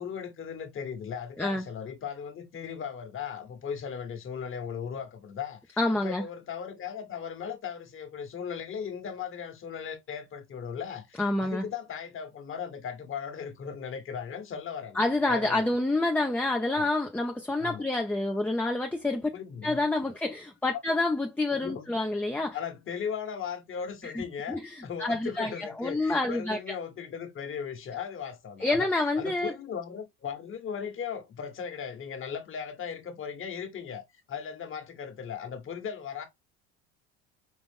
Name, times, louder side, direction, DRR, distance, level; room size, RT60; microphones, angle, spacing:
voice 1, 0.0-15.7 16.7-16.9 17.6-17.9 19.3-19.8 21.6-21.9 22.5-28.9 29.2-34.0 34.3-36.2, left 7 dB, 40° left, 1.3 m, -37 dB
voice 2, 5.8-6.2 11.2-11.6 15.0-19.3 19.6-22.6 24.0-26.7 28.6-29.5, left 2 dB, 5° left, 0.6 m, -28 dB
5.4 x 2.5 x 3.5 m
supercardioid pair, 100°, 30 cm